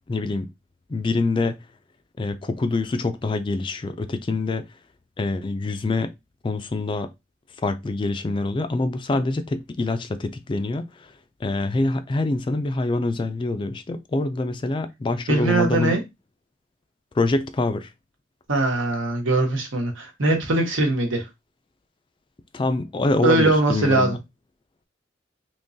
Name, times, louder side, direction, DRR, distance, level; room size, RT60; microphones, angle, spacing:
voice 1, 0.1-0.5 0.9-1.6 2.2-4.6 5.2-6.1 6.4-7.1 7.6-11.1 11.4-16.0 17.1-17.9 22.5-24.1, left 2 dB, 25° left, 0.3 m, -25 dB
voice 2, 15.3-16.0 18.5-21.3 23.2-24.2, right 2 dB, 85° right, 1.2 m, -21 dB
3.6 x 3.0 x 2.6 m
head